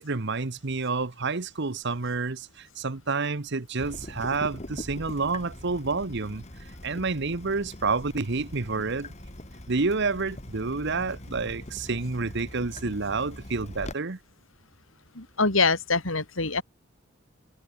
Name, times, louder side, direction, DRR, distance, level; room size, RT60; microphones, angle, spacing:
voice 1, 0.0-9.1 9.7-14.2, right 4 dB, 55° right, 1.1 m, -29 dB
Water tap faucet / Drip, 3.8-13.9, left 1 dB, 35° left, 3.3 m, -42 dB
voice 2, 15.1-16.6, left 4 dB, 70° left, 4.4 m, -24 dB
head